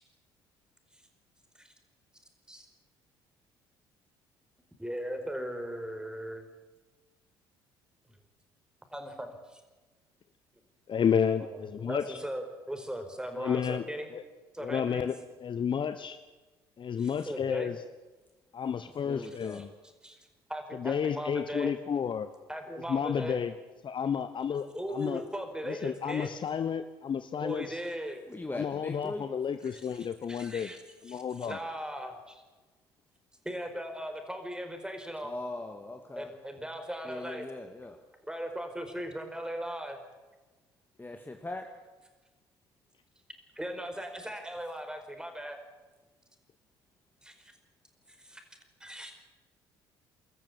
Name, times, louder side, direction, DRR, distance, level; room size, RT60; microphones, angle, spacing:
voice 1, 4.8-6.4 8.9-9.6 11.4-14.1 14.5-15.1 17.0-17.7 19.2-19.6 20.0-21.8 22.5-23.4 24.7-26.3 27.4-28.2 29.6-30.8 31.1-32.4 33.4-35.3 36.1-37.5 38.3-40.0 43.5-45.6 47.2-47.5 48.1-48.4 48.8-49.3, equal, 5° right, 5 dB, 4.8 m, -38 dB
voice 2, 10.9-12.2 13.4-13.8 14.1-14.2 14.6-15.1 15.4-16.2 16.8-17.8 18.5-19.7 20.8-22.3 22.9-23.5 23.8-25.2 25.7-27.8 28.5-30.7 31.0-31.6, left 7 dB, 40° left, 11 dB, 1.0 m, -31 dB
voice 3, 19.0-19.6 28.3-29.3 35.2-36.3 37.1-38.0 41.0-41.7, left 2 dB, 15° left, 4 dB, 2.1 m, -40 dB
25.5 x 14.0 x 8.8 m, 1.2 s
hypercardioid pair, 55°, 12 cm